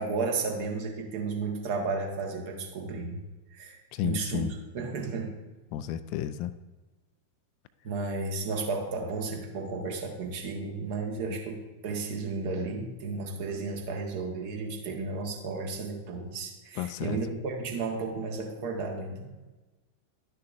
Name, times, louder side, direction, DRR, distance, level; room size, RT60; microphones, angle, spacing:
voice 1, 0.0-3.2 3.5-4.5 4.7-5.3 7.8-19.3, right 4 dB, 50° right, 1 dB, 1.3 m, -33 dB
voice 2, 3.9-4.5 5.7-6.5 16.8-17.2, left 11 dB, 45° left, 12 dB, 0.4 m, -32 dB
11.5 x 6.6 x 2.5 m, 1.2 s
figure-of-eight pair, 90°, 0 cm